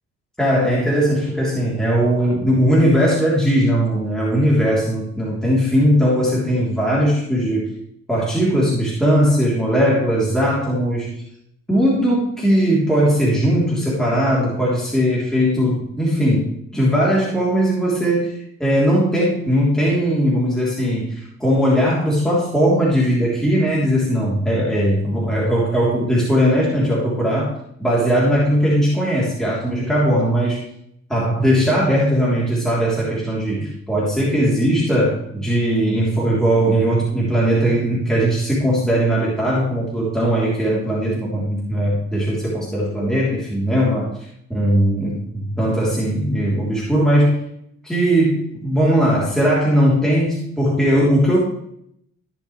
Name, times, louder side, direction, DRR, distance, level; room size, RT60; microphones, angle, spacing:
voice 1, 0.4-7.7 8.1-11.1 11.7-18.3 18.6-27.5 27.8-30.6 31.1-44.1 44.5-47.4 47.8-51.4, equal, ahead, -6 dB, 3.3 m, -19 dB
15.0 x 6.9 x 3.2 m, 0.72 s
cardioid pair, 90°, 30 cm